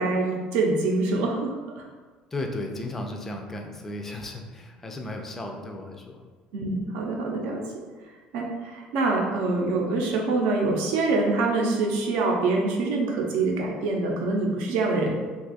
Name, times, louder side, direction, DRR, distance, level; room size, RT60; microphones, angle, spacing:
voice 1, 0.0-1.8 6.5-7.6 8.3-15.1, right 3 dB, 80° right, 0 dB, 0.6 m, -25 dB
voice 2, 2.3-6.2 6.6-6.9, left 2 dB, 15° left, 2 dB, 0.3 m, -35 dB
2.5 x 2.4 x 4.0 m, 1.4 s
cardioid pair, 165°, 3 cm